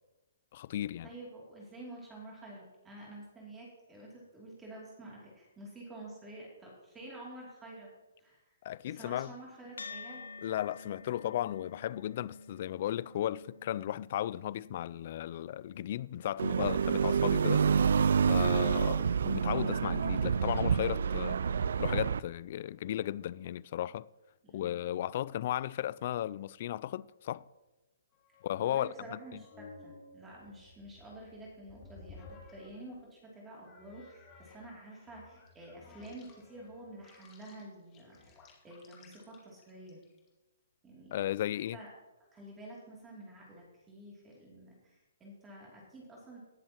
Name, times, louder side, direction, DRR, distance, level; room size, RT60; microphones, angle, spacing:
voice 1, 0.5-1.1 8.6-9.3 10.4-17.6 18.3-21.4 21.8-24.1 24.5-27.5 28.4-29.2 41.1-41.8, left 12 dB, 50° left, 0.3 m, -35 dB
voice 2, 1.0-7.9 8.2-8.6 8.8-10.4 24.4-24.8 28.6-40.0 40.8-41.2 41.7-41.9 42.3-46.4, right 1 dB, 15° right, 2.8 m, -49 dB
sound 1, 9.8-18.4, left 4 dB, 90° left, 0.7 m, -51 dB
sound 2, 16.4-22.2, right 6 dB, 70° right, 0.3 m, -28 dB
sound 3, 28.1-33.1 33.6-40.3, left 3 dB, 25° left, 2.3 m, -56 dB
18.5 x 7.4 x 3.0 m
hypercardioid pair, 140°, 0 cm